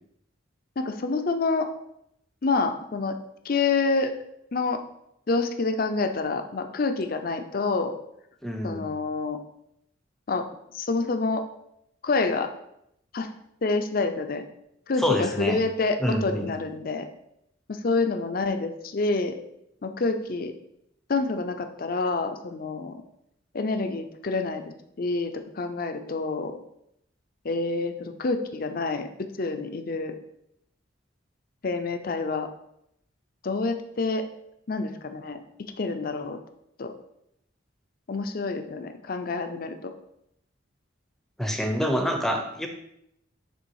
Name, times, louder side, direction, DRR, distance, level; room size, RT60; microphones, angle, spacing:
voice 1, 0.8-1.7 2.4-3.1 3.4-4.1 4.5-4.8 5.3-7.9 8.6-9.4 10.3-10.4 10.7-11.4 12.0-12.5 13.1-13.3 13.6-14.4 14.9-17.1 17.7-19.3 19.8-20.5 21.1-23.0 23.5-24.6 25.0-26.6 27.4-30.1 31.6-32.5 33.4-34.2 34.7-36.4 36.8-36.9 38.1-39.9, left 3 dB, 45° left, 7 dB, 0.5 m, -27 dB
voice 2, 8.4-8.9 15.0-15.6 16.0-16.5 41.4-42.7, equal, ahead, 4 dB, 0.6 m, -26 dB
6.9 x 3.4 x 4.7 m, 0.78 s
head